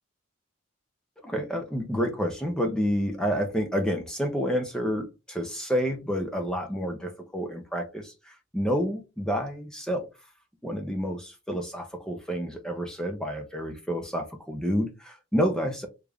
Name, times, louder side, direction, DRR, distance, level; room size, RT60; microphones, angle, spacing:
voice 1, 1.2-10.1 10.6-15.9, equal, 5° left, 3 dB, 0.6 m, -29 dB
3.4 x 2.5 x 3.5 m, 0.26 s
head